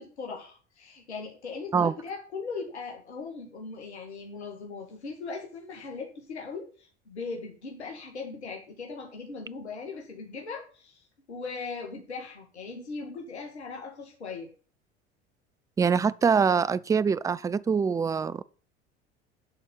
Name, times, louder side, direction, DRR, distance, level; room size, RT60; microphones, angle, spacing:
voice 1, 0.0-14.5, left 4 dB, 80° left, 1.9 m, -39 dB
voice 2, 15.8-18.4, right 6 dB, 10° right, 0.4 m, -24 dB
10.5 x 4.3 x 7.0 m
figure-of-eight pair, 70°, 33 cm